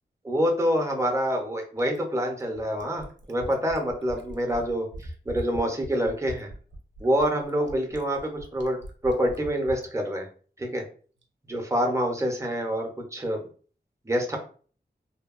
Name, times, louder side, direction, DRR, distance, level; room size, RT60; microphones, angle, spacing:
voice 1, 0.2-6.5 7.0-8.8 9.0-10.3 10.6-10.8 11.5-13.5 14.0-14.4, equal, 15° right, 1 dB, 0.6 m, -26 dB
Fill (with liquid), 1.8-9.9 11.2-11.3, right 1 dB, 90° right, 0.5 m, -41 dB
2.7 x 2.2 x 2.4 m, 0.42 s
wide cardioid pair, 105°, 18 cm